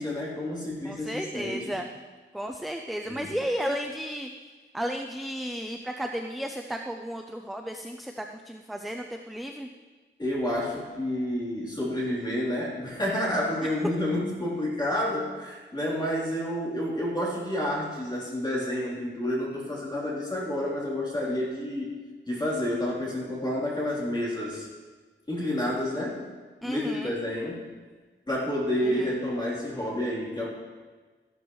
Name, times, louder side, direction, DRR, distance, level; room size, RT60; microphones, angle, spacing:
voice 1, 0.0-1.7 3.0-3.3 10.2-22.0 22.3-24.7 25.3-26.2 26.6-27.6 28.3-30.5, left 1 dB, 20° left, -6 dB, 3.4 m, -29 dB
voice 2, 0.8-1.9 2.3-4.3 4.7-9.7 26.6-27.1 28.8-29.1, equal, ahead, 3 dB, 0.5 m, -33 dB
13.5 x 12.0 x 3.1 m, 1.4 s
wide cardioid pair, 140°, 20 cm